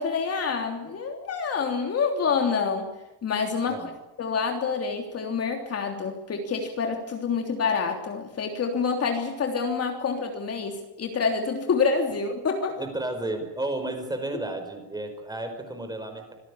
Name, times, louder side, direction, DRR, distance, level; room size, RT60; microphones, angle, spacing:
voice 1, 0.0-2.9 3.2-3.9 4.2-12.8, left 5 dB, 35° left, 4 dB, 3.3 m, -27 dB
voice 2, 12.8-16.3, right 2 dB, 10° right, 6 dB, 4.9 m, -32 dB
26.5 x 17.5 x 9.9 m, 0.99 s
cardioid pair, 165°, 43 cm